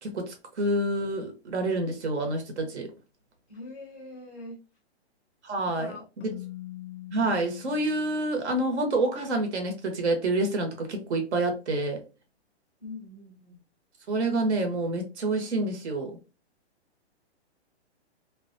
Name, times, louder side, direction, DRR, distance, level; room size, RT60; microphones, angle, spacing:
voice 1, 0.0-2.9 5.4-6.3 7.1-12.0 14.1-16.2, right 2 dB, 80° right, 1.0 m, -28 dB
voice 2, 3.5-4.6 5.4-6.0 12.8-13.6, left 2 dB, ahead, 0.3 m, -43 dB
Keyboard (musical), 6.2-8.9, left 15 dB, 75° left, 0.5 m, -43 dB
2.3 x 2.2 x 2.5 m
hypercardioid pair, 150°, 34 cm